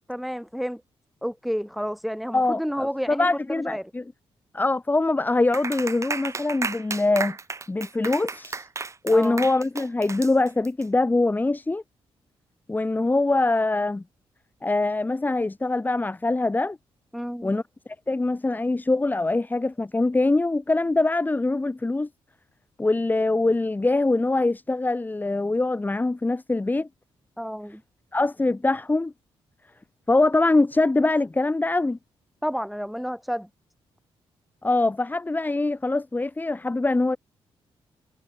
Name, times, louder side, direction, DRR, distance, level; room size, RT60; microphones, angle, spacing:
voice 1, 0.1-0.8 1.2-3.9 9.1-9.5 17.1-17.5 27.4-27.8 32.4-33.5, equal, ahead, 1.4 m, -30 dB
voice 2, 2.3-4.0 4.5-7.4 7.7-8.7 9.0-11.8 12.7-14.0 14.6-16.8 17.4-17.6 18.1-22.1 22.8-26.9 28.1-29.1 30.1-32.0 34.6-37.2, left 2 dB, 15° left, 0.8 m, -23 dB
Clapping, 5.5-10.8, right 4 dB, 30° right, 0.7 m, -33 dB
cardioid pair, 75°, 10 cm